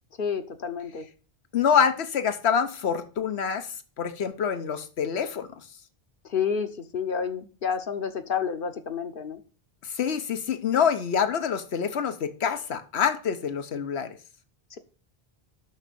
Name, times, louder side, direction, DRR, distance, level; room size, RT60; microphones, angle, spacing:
voice 1, 0.2-1.1 6.3-6.7 6.9-9.4, left 6 dB, 60° left, 8 dB, 1.0 m, -29 dB
voice 2, 1.5-3.7 4.0-5.5 9.9-14.1, left 7 dB, 90° left, 9 dB, 1.2 m, -26 dB
6.5 x 6.2 x 6.8 m, 0.38 s
omnidirectional pair, 1.1 m